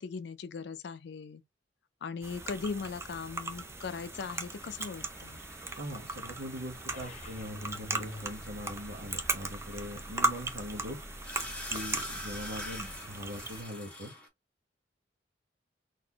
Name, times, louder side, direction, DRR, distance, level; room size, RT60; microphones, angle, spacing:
voice 1, 0.0-1.4 2.0-5.4, left 5 dB, 65° left, 0.4 m, -39 dB
sound 1, 2.2-13.6, right 2 dB, 15° right, 0.5 m, -38 dB
sound 2, 3.5-14.3, left 1 dB, 5° left, 1.0 m, -47 dB
voice 2, 5.8-11.0 11.7-14.1, equal, 65° right, 1.0 m, -41 dB
sound 3, 6.9-12.9, left 2 dB, 40° left, 0.8 m, -48 dB
4.0 x 2.6 x 2.8 m
head